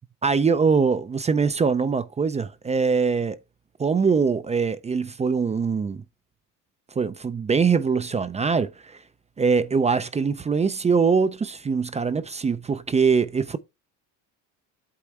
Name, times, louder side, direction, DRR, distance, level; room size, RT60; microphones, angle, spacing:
voice 1, 0.2-3.4 3.8-6.0 7.0-9.0 9.4-13.6, right 5 dB, 20° right, 0.4 m, -23 dB
8.5 x 3.1 x 4.5 m
supercardioid pair, 105°, 42 cm